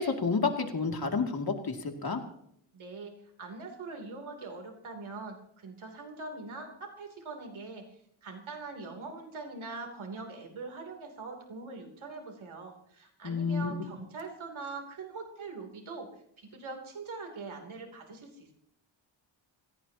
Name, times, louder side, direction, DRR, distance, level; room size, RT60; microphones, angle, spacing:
voice 1, 0.0-2.2 13.2-13.7, left 4 dB, 50° left, 3 dB, 2.5 m, -30 dB
voice 2, 2.7-7.9 8.2-16.1 16.4-18.5, right 3 dB, 90° right, 2 dB, 3.2 m, -42 dB
26.5 x 16.5 x 2.9 m, 0.68 s
wide cardioid pair, 135°, 47 cm